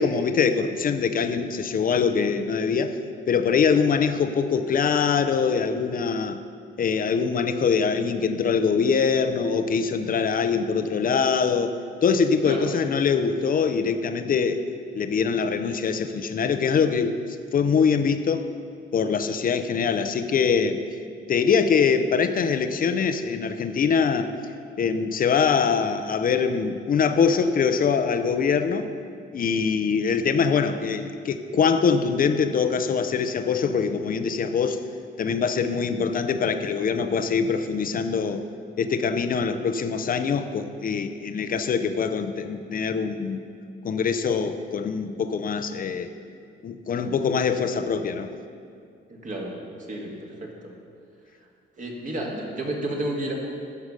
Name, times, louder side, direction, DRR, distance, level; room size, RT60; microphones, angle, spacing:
voice 1, 0.0-3.0 3.3-6.4 6.8-14.6 14.9-17.2 17.5-18.5 18.9-20.8 21.3-24.3 24.8-28.9 29.3-34.8 35.2-38.5 38.8-43.4 43.8-46.1 46.6-48.3, left 6 dB, 45° left, 9 dB, 0.6 m, -23 dB
voice 2, 49.1-49.6 49.9-50.7 51.8-53.3, right 1 dB, 40° right, -1 dB, 1.8 m, -31 dB
12.0 x 4.8 x 5.4 m, 2.3 s
cardioid pair, 90°, 20 cm